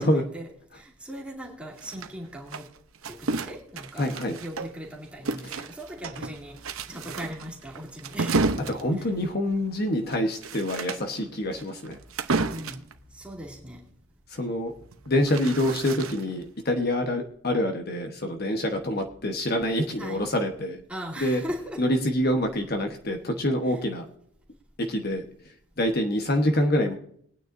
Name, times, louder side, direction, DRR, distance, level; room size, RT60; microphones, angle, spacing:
voice 1, 0.0-2.7 3.1-4.1 4.4-6.6 6.9-8.4 9.0-9.1 12.3-12.8 13.1-13.9 20.0-20.2 20.9-21.8 23.7-23.8, equal, 5° right, -3 dB, 2.5 m, -39 dB
sound 1, 1.8-4.9 5.2-12.9 14.8-16.4, right 3 dB, 80° right, 0.8 m, -32 dB
voice 2, 4.0-4.4 8.7-12.0 14.3-14.7 15.1-20.8 21.2-21.4 21.8-24.0 24.8-25.2 25.8-27.0, left 1 dB, 45° left, 4 dB, 1.1 m, -26 dB
21.5 x 9.4 x 2.6 m, 0.64 s
head